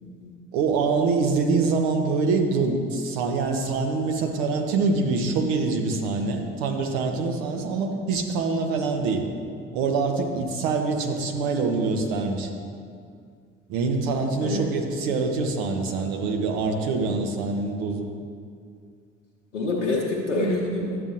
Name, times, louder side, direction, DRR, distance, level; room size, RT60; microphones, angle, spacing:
voice 1, 0.0-0.3 14.4-14.6 17.0-17.1 19.5-21.0, left 2 dB, 80° left, -4 dB, 0.9 m, -27 dB
voice 2, 0.5-9.3 9.7-12.5 13.7-18.1, right 4 dB, 65° right, 4 dB, 1.0 m, -25 dB
12.0 x 7.7 x 2.7 m, 2.2 s
figure-of-eight pair, 55°, 36 cm